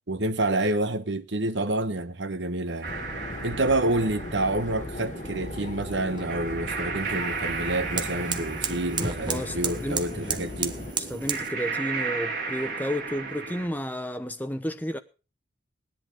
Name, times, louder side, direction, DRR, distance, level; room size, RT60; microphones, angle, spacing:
voice 1, 0.1-2.9 3.4-10.8, right 2 dB, 70° right, 1.1 m, -28 dB
sound 1, 2.8-13.7, right 4 dB, 50° right, 3.5 m, -35 dB
sound 2, 2.9-10.9, left 2 dB, 40° left, 1.1 m, -38 dB
sound 3, 4.7-11.5, right 6 dB, 25° right, 1.0 m, -35 dB
voice 2, 9.3-10.6 11.1-15.0, equal, 10° left, 1.0 m, -32 dB
17.5 x 10.5 x 5.0 m
head